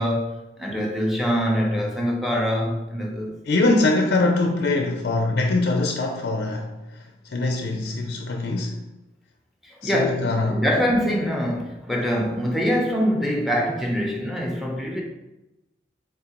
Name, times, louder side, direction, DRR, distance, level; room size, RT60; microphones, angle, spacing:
voice 1, 0.0-3.3 9.6-15.0, equal, ahead, 0.7 m, -24 dB
voice 2, 3.5-8.8 9.8-10.6, left 2 dB, 60° left, 0.4 m, -23 dB
3.7 x 3.7 x 2.9 m
head